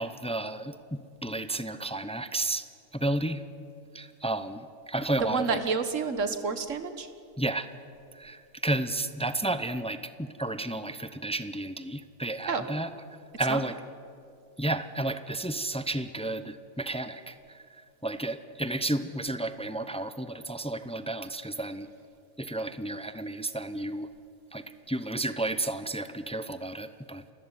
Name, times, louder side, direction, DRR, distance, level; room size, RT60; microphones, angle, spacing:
voice 1, 0.0-2.7 2.9-3.4 3.9-5.6 7.4-7.7 8.1-12.9 13.4-13.8 14.6-21.9 22.4-24.1 24.5-27.2, right 2 dB, 5° left, 12 dB, 0.5 m, -32 dB
voice 2, 5.2-7.1 12.5-12.6 13.5-13.6, right 5 dB, 65° right, 10 dB, 1.7 m, -29 dB
29.0 x 13.5 x 9.8 m, 2.5 s
omnidirectional pair, 1.4 m